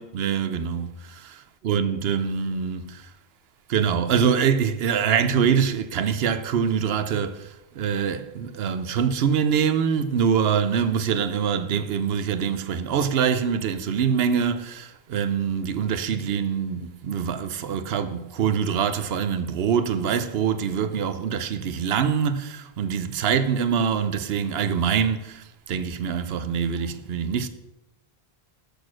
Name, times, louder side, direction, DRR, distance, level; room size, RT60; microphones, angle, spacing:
voice 1, 0.0-3.1 3.7-27.5, right 7 dB, 75° right, 0.9 m, -24 dB
6.7 x 6.3 x 6.2 m
omnidirectional pair, 1.1 m